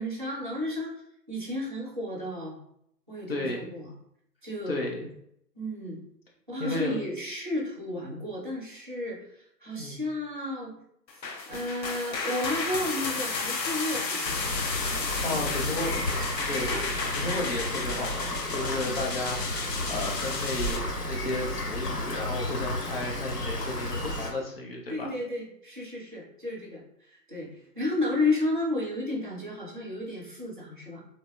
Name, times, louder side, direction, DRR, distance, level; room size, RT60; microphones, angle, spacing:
voice 1, 0.0-2.6 3.1-3.9 4.4-4.8 5.5-6.0 6.5-10.8 11.5-14.4 23.9-24.1 24.9-31.0, left 2 dB, 35° right, -3 dB, 0.4 m, -32 dB
voice 2, 3.3-3.7 4.7-5.1 6.6-7.0 9.7-10.0 15.2-16.1 16.5-16.7 17.1-25.1, left 2 dB, 40° left, -1 dB, 0.5 m, -33 dB
sound 1, 11.1-20.8, left 4 dB, 85° left, 0.6 m, -33 dB
Rain, 14.2-24.3, left 1 dB, 65° left, 0.9 m, -32 dB
3.2 x 2.0 x 2.3 m, 0.73 s
figure-of-eight pair, 140°, 50 cm